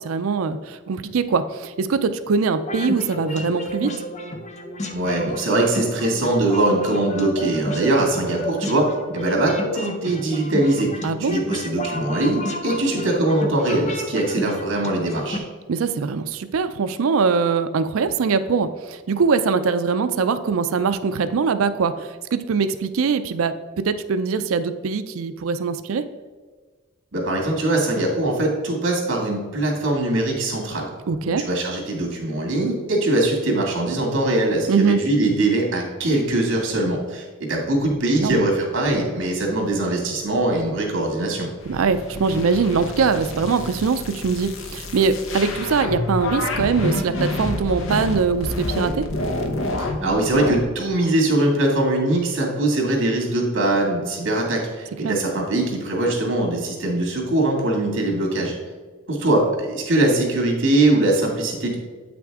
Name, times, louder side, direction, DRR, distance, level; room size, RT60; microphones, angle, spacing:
voice 1, 0.0-3.9 11.0-11.3 15.7-26.0 31.1-31.4 34.7-35.0 38.2-38.4 41.6-49.1 55.0-55.2, right 5 dB, 85° right, 11 dB, 0.4 m, -22 dB
sound 1, 2.6-15.4, left 1 dB, 35° left, 0.7 m, -32 dB
voice 2, 4.9-8.9 9.1-10.9 11.2-15.4 27.1-30.9 31.2-41.5 49.8-58.6 59.1-61.8, right 2 dB, 65° right, -1 dB, 2.2 m, -22 dB
sound 2, 41.6-50.6, left 2 dB, 70° left, 0.9 m, -28 dB
8.4 x 6.0 x 3.6 m, 1.4 s
head